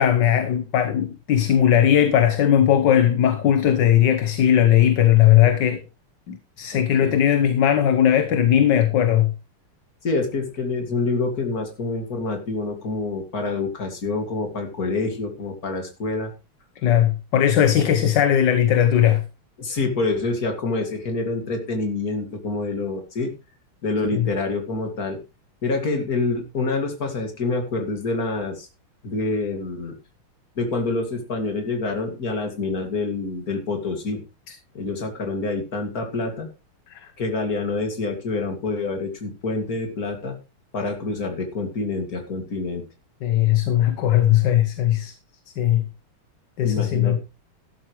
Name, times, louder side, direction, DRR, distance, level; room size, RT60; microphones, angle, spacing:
voice 1, 0.0-5.8 6.3-9.3 16.8-19.2 24.1-24.3 34.5-34.6 36.9-37.1 43.2-45.1 45.6-45.8 46.6-47.2, left 10 dB, 60° left, 1.5 m, -18 dB
voice 2, 6.7-7.1 10.0-16.3 19.6-23.3 23.8-25.2 25.6-28.7 29.0-30.0 30.6-34.2 34.7-36.5 37.2-40.4 40.7-42.8 46.6-47.2, left 3 dB, 45° left, 2.7 m, -27 dB
12.0 x 12.0 x 3.2 m
omnidirectional pair, 2.4 m